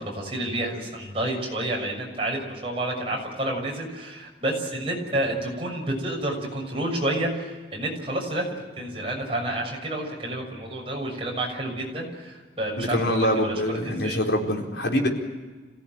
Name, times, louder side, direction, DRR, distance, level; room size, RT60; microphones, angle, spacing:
voice 1, 0.1-8.5 8.7-14.2, right 1 dB, 30° right, -1 dB, 6.6 m, -29 dB
voice 2, 12.8-15.1, left 1 dB, 70° left, 0 dB, 4.5 m, -24 dB
27.0 x 17.0 x 9.2 m, 1.3 s
head